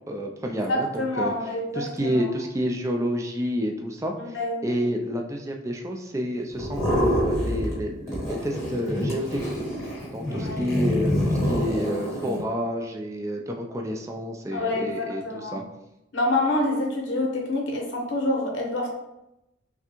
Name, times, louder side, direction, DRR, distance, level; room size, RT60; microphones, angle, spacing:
voice 1, 0.1-1.3 1.7-4.4 4.6-9.6 10.1-15.6, equal, 15° right, 1 dB, 0.4 m, -29 dB
voice 2, 0.6-2.3 4.2-4.6 10.3-10.6 14.5-15.6 16.1-18.9, left 2 dB, 80° left, 0 dB, 0.9 m, -27 dB
sound 1, 6.6-7.8 8.1-12.4, equal, 15° left, 1.4 m, -26 dB
5.8 x 2.2 x 2.9 m, 0.90 s
head